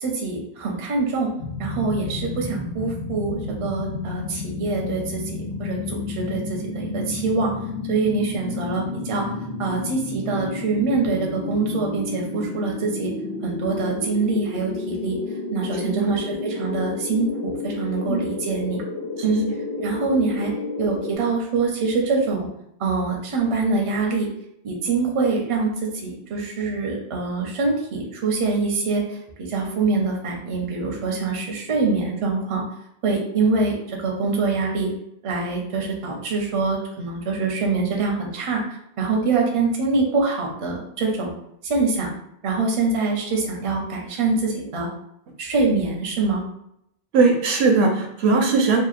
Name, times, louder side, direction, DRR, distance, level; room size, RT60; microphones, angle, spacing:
voice 1, 0.0-1.3 1.6-7.5 7.9-9.3 9.6-13.1 13.4-15.2 15.5-18.8 19.2-19.4 19.8-20.5 20.8-22.5 22.8-24.3 24.6-29.2 29.5-32.6 33.0-34.9 35.2-38.6 39.0-41.3 41.6-42.1 42.4-44.9 45.4-46.4, right 3 dB, 40° right, 0 dB, 0.5 m, -24 dB
sound 1, 1.4-21.2, left 3 dB, 75° left, 1.0 m, -31 dB
voice 2, 47.1-48.8, right 4 dB, 80° right, 2 dB, 0.8 m, -19 dB
2.8 x 2.1 x 2.4 m, 0.75 s
omnidirectional pair, 1.1 m